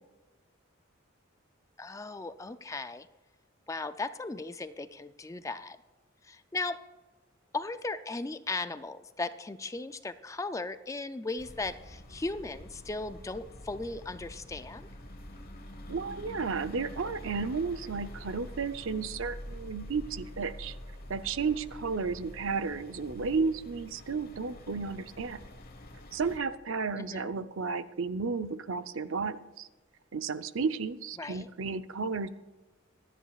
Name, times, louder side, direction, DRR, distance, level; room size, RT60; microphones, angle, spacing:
voice 1, 1.8-3.1 3.7-5.8 6.2-6.8 7.5-14.9 27.0-27.3 31.2-31.5, left 3 dB, 15° left, 11 dB, 0.4 m, -37 dB
sound 1, 11.4-26.4, left 1 dB, 45° left, 1.3 m, -46 dB
voice 2, 15.9-20.7 21.1-25.4 26.1-29.7 30.1-32.3, right 4 dB, 70° right, 11 dB, 0.6 m, -33 dB
25.5 x 10.0 x 2.4 m, 1.2 s
head